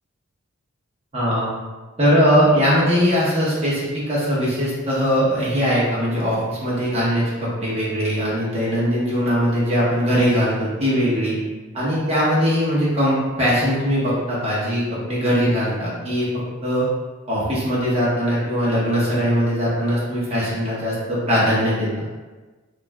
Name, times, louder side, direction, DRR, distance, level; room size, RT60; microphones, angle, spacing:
voice 1, 1.1-1.5 2.0-11.4 11.7-16.3 16.6-16.9 17.3-21.9, equal, 30° right, -8 dB, 0.8 m, -20 dB
2.4 x 2.1 x 3.3 m, 1.3 s
head